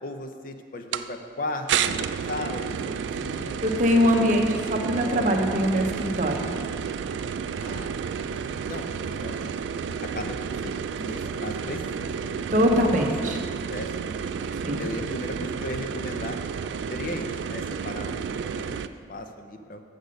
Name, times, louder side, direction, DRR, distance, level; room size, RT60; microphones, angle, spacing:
voice 1, 0.0-3.6 3.9-4.6 5.0-5.3 7.6-7.9 8.3-9.5 10.0-12.5 12.8-14.0 14.8-16.4 16.9-19.8, left 1 dB, 45° left, 6 dB, 0.5 m, -37 dB
sound 1, 0.9-1.1 1.7-18.9, right 7 dB, 75° right, 0.3 m, -31 dB
voice 2, 3.6-6.5 12.5-13.4 14.6-14.9, equal, 45° right, 2 dB, 0.8 m, -22 dB
8.3 x 6.6 x 5.1 m, 2.1 s
head